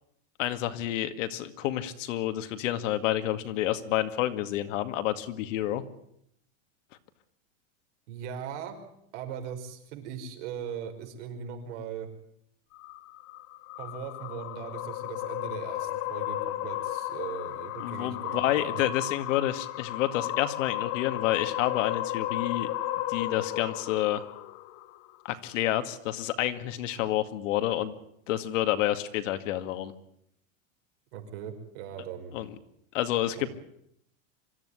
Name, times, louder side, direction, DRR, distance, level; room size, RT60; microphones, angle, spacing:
voice 1, 0.4-5.8 17.8-22.7 23.1-24.2 25.2-28.0 28.3-29.9 32.3-32.5 32.9-33.5, left 13 dB, 75° left, 9 dB, 2.3 m, -29 dB
voice 2, 8.1-8.8 9.1-12.1 13.8-18.8 31.1-32.3 33.4-33.5, right 8 dB, 60° right, 5 dB, 5.5 m, -39 dB
sound 1, 12.7-25.2, left 15 dB, 40° left, 1.2 m, -34 dB
25.0 x 14.0 x 9.9 m, 0.75 s
supercardioid pair, 155°, 39 cm